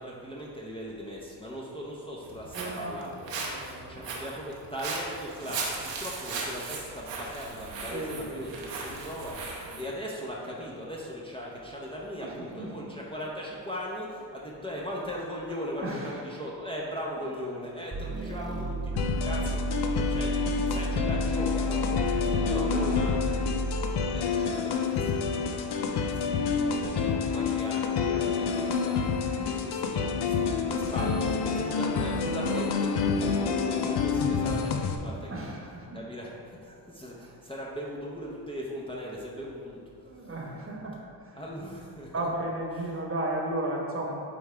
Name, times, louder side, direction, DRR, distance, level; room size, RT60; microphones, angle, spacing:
voice 1, 0.0-3.4 3.9-23.3 24.1-29.2 29.6-30.3 30.7-35.6 35.9-40.3 41.3-42.3, equal, 10° left, -5 dB, 0.8 m, -39 dB
Walk footsteps, 2.2-9.8, right 4 dB, 85° right, 1.0 m, -37 dB
voice 2, 2.5-2.9 3.3-4.0 7.9-8.4 8.8-8.9 9.7-9.8 12.2-12.7 15.8-16.1 22.5-22.9 29.4-29.7 31.0-31.4 35.3-36.0 40.0-41.4 42.1-44.1, right 1 dB, 30° right, -2 dB, 1.2 m, -35 dB
sound 1, 17.9-24.1, right 2 dB, 10° right, 0.4 m, -32 dB
sound 2, 19.0-35.0, left 5 dB, 65° left, 0.7 m, -28 dB
8.6 x 3.5 x 3.3 m, 2.4 s
cardioid pair, 90°, 43 cm